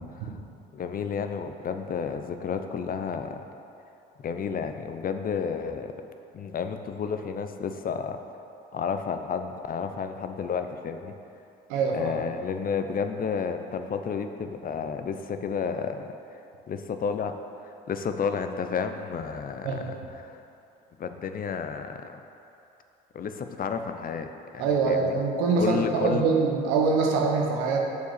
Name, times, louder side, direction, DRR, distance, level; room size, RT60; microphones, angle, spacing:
voice 1, 0.7-3.5 4.2-6.0 6.3-8.2 8.7-11.1 11.9-16.4 16.7-17.3 17.6-19.7 20.2-20.4 21.0-22.2 23.1-25.2 25.6-26.3, left 6 dB, 45° left, 7 dB, 0.6 m, -31 dB
voice 2, 11.7-12.1 19.6-19.9 24.6-27.8, right 4 dB, 85° right, 0 dB, 1.1 m, -24 dB
6.7 x 4.8 x 6.7 m, 2.7 s
supercardioid pair, 65°, 21 cm